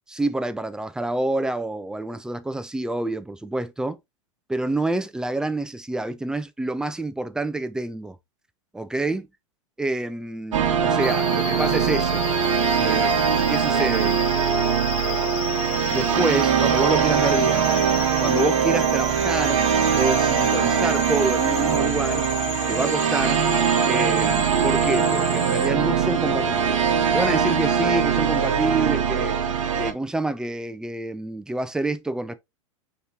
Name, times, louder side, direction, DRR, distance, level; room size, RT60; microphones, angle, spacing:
voice 1, 0.1-4.0 4.5-8.2 8.7-9.3 9.8-12.3 12.8-13.1 13.5-14.2 15.9-17.7 18.2-19.6 20.0-22.3 22.7-23.4 23.9-26.8 27.1-29.4 29.8-32.4, right 2 dB, 5° right, 0.3 m, -27 dB
sound 1, 10.5-29.9, right 7 dB, 75° right, 0.9 m, -22 dB
sound 2, 11.0-25.7, left 5 dB, 40° left, 1.8 m, -34 dB
5.4 x 2.9 x 2.7 m
hypercardioid pair, 100°, 17 cm